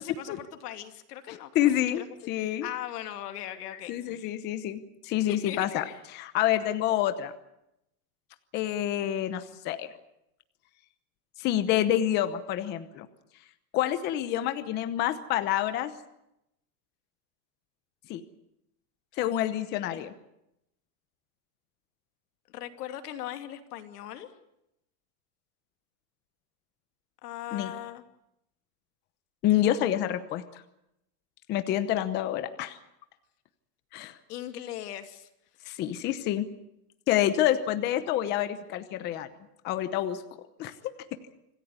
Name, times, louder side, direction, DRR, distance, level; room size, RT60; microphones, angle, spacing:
voice 1, 0.0-1.5 1.8-2.1 2.4-4.3 5.3-6.0 19.9-20.1 22.5-24.3 27.2-28.0 34.3-35.3, left 12 dB, 80° left, 7 dB, 2.7 m, -39 dB
voice 2, 1.3-2.7 3.9-5.8 6.1-7.3 8.5-9.9 11.4-13.1 13.7-15.9 18.1-18.2 19.2-20.1 27.5-27.7 29.4-30.6 31.5-32.8 33.9-34.1 35.7-36.5 37.1-39.3 39.6-40.2 40.6-40.7, left 12 dB, 20° left, 10 dB, 0.9 m, -28 dB
26.0 x 15.5 x 9.6 m, 0.84 s
supercardioid pair, 175°, 46 cm